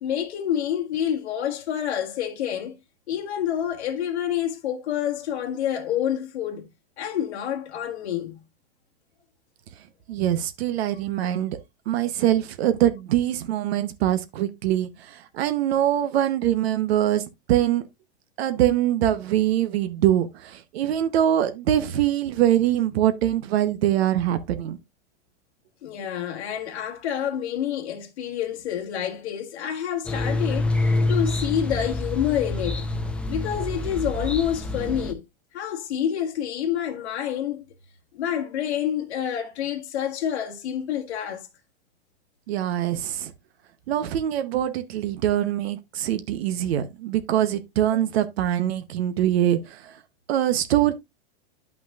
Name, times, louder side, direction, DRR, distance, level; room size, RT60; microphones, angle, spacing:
voice 1, 0.0-2.8 3.1-6.7 7.0-8.4 25.8-35.2 35.5-37.6 38.1-41.5, left 10 dB, 90° left, 1.6 m, -28 dB
voice 2, 10.1-11.6 11.9-17.8 18.4-24.8 42.5-43.3 43.9-50.0 50.3-50.9, right 11 dB, 70° right, 0.9 m, -23 dB
sound 1, 30.1-35.1, left 2 dB, 5° left, 0.6 m, -26 dB
10.5 x 6.0 x 2.4 m
supercardioid pair, 145°, 32 cm